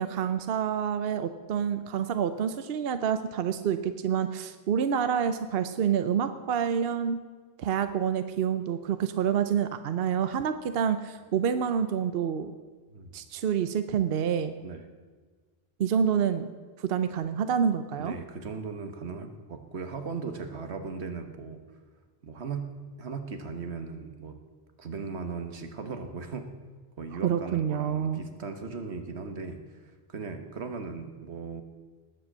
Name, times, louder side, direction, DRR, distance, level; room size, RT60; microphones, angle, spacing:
voice 1, 0.0-7.2 7.6-12.5 13.1-14.5 15.8-16.5 16.8-18.2 27.2-28.2, right 8 dB, 65° right, 10 dB, 0.9 m, -27 dB
voice 2, 17.9-21.6 22.2-22.7 23.0-24.4 24.8-26.5 27.0-31.6, right 4 dB, 85° right, 7 dB, 1.6 m, -38 dB
19.0 x 7.8 x 7.3 m, 1.4 s
omnidirectional pair, 1.1 m